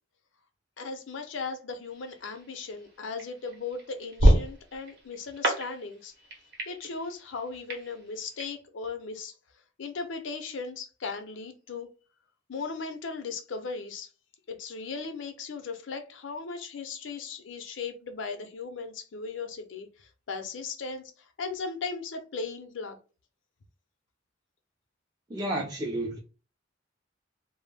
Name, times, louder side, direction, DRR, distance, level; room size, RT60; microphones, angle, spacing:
voice 1, 0.8-6.1 6.7-9.3 9.8-11.9 12.5-14.1 14.5-21.1 21.4-23.0, left 4 dB, 70° left, 0.5 m, -37 dB
sound 1, 1.9-8.5, right 1 dB, 55° right, 0.7 m, -29 dB
voice 2, 25.3-26.2, right 1 dB, 20° right, 0.3 m, -31 dB
2.2 x 2.0 x 3.2 m
head